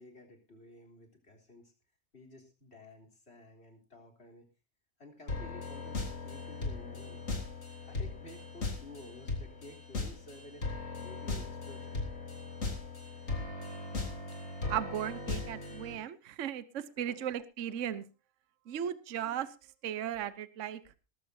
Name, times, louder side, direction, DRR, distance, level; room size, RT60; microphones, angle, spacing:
voice 1, 0.0-1.7 2.1-4.5 5.0-7.2 7.9-12.0 17.1-17.2, left 2 dB, 45° left, 1 dB, 3.9 m, -53 dB
sound 1, 5.3-16.0, left 3 dB, 60° left, 3.6 m, -38 dB
voice 2, 14.7-18.0 18.7-19.5 19.8-20.8, right 10 dB, 60° right, 14 dB, 1.2 m, -36 dB
19.5 x 14.5 x 2.8 m, 0.29 s
omnidirectional pair, 1.6 m